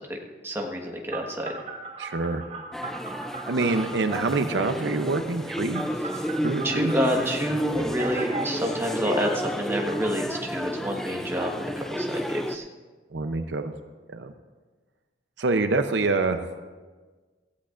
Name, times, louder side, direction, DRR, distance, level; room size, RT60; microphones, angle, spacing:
voice 1, 0.4-1.6 6.6-12.7, equal, 15° right, 0 dB, 1.4 m, -28 dB
Telephone, 1.1-4.5 5.7-7.2 7.8-9.4, right 3 dB, 40° right, 2.4 m, -36 dB
voice 2, 2.0-2.4 3.5-5.8 6.4-6.9 13.1-13.7 14.1-14.3 15.4-16.4, right 3 dB, 70° right, 7 dB, 0.7 m, -26 dB
sound 1, 2.7-12.6, equal, ahead, 0.4 m, -31 dB
17.0 x 15.0 x 2.5 m, 1.4 s
head